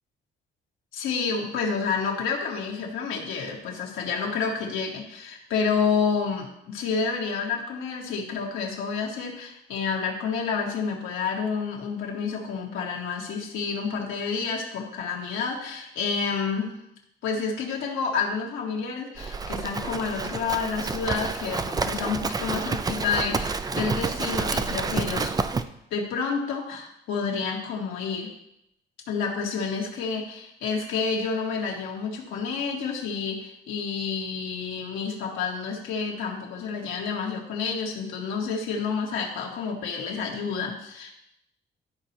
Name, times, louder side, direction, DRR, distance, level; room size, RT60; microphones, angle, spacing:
voice 1, 0.9-16.7 17.2-25.3 25.9-28.3 29.1-41.1, left 5 dB, 85° left, -1 dB, 1.7 m, -29 dB
Livestock farm animals working animals, 19.2-25.6, right 4 dB, 20° right, 0.4 m, -29 dB
12.5 x 4.2 x 2.9 m, 0.79 s
cardioid pair, 90°, 20 cm